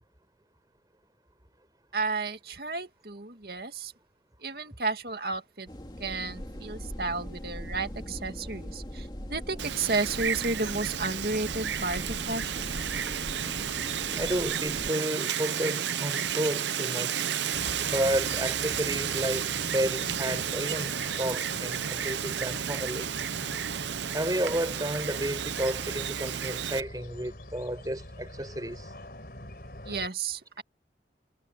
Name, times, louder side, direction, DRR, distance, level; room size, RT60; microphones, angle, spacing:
voice 1, 1.9-3.9 4.4-5.7 6.0-12.7 13.5-13.7 29.8-30.6, right 3 dB, 60° right, 2.4 m, -32 dB
sound 1, 5.7-14.9, equal, 25° left, 2.3 m, -40 dB
Wind, 9.6-26.8, right 8 dB, 90° right, 0.8 m, -32 dB
voice 2, 14.2-17.3 17.8-23.1 24.1-28.9, right 1 dB, 20° right, 4.6 m, -32 dB
sound 2, 17.5-30.1, left 1 dB, 60° left, 4.3 m, -44 dB
head